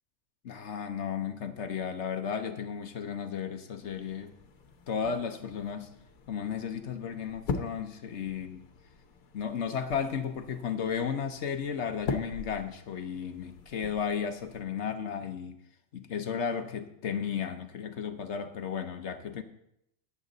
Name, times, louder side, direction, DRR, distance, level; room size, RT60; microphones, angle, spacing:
voice 1, 0.4-4.3 4.9-5.9 6.3-8.6 9.3-15.6 15.9-19.4, left 7 dB, 55° left, 8 dB, 1.1 m, -34 dB
sound 1, 3.8-14.6, left 4 dB, 75° left, 1.5 m, -42 dB
14.0 x 9.7 x 4.0 m, 0.77 s
omnidirectional pair, 1.5 m